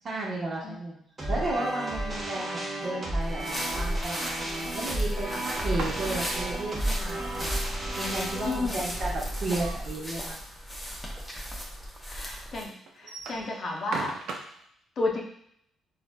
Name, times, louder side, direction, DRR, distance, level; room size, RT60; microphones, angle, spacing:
voice 1, 0.0-1.0 1.3-4.3 4.7-7.6 8.0-10.4, right 2 dB, 50° right, -4 dB, 1.1 m, -34 dB
sound 1, 1.2-10.3, right 1 dB, 30° right, 1.0 m, -33 dB
sound 2, 3.2-12.6, equal, 5° left, 0.7 m, -36 dB
sound 3, 5.5-6.6 8.7-10.0 10.4-10.5 10.7-10.8 11.6-11.7 12.9-14.6, right 4 dB, 80° right, 0.5 m, -38 dB
voice 2, 8.4-8.8 11.4-11.5 12.1-14.2 15.0-15.2, left 3 dB, 55° left, 0 dB, 0.6 m, -32 dB
3.8 x 2.5 x 2.2 m, 0.69 s
cardioid pair, 90°, 0 cm